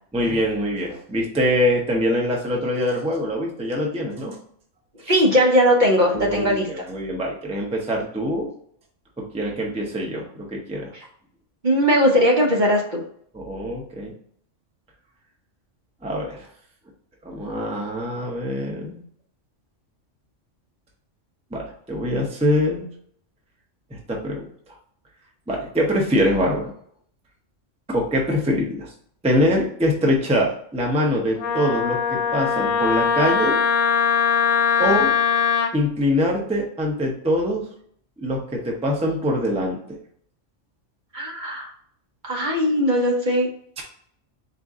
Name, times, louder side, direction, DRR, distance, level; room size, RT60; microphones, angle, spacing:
voice 1, 0.1-4.4 6.1-8.5 9.2-10.9 13.3-14.1 16.0-16.5 17.2-19.0 21.5-22.9 23.9-24.5 25.5-26.7 27.9-28.9 29.2-33.6 34.8-35.1 35.7-37.7 38.2-40.0 43.8-43.9, equal, 5° right, -1 dB, 0.6 m, -24 dB
voice 2, 5.1-6.7 10.9-11.1 11.6-13.0 41.1-41.7 42.2-43.5, equal, 45° right, -1 dB, 0.9 m, -19 dB
Wind instrument woodwind instrument, 31.4-35.7, left 7 dB, 90° left, 1.0 m, -21 dB
4.3 x 2.7 x 3.6 m, 0.63 s
omnidirectional pair, 1.3 m